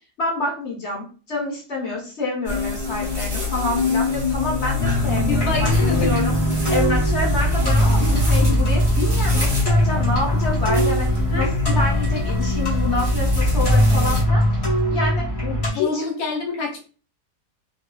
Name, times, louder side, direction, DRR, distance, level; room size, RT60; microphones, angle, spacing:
voice 1, 0.2-6.3 6.7-14.4 14.9-15.3 15.7-16.0, left 2 dB, 50° left, -3 dB, 1.0 m, -27 dB
sound 1, 2.5-14.2, left 4 dB, 40° right, 1.1 m, -27 dB
sound 2, 4.8-15.7, equal, 30° left, 0.8 m, -20 dB
voice 2, 5.3-6.2 11.3-11.5 15.4-16.8, left 3 dB, 70° left, 1 dB, 1.3 m, -27 dB
2.7 x 2.4 x 2.2 m, 0.37 s
omnidirectional pair, 1.7 m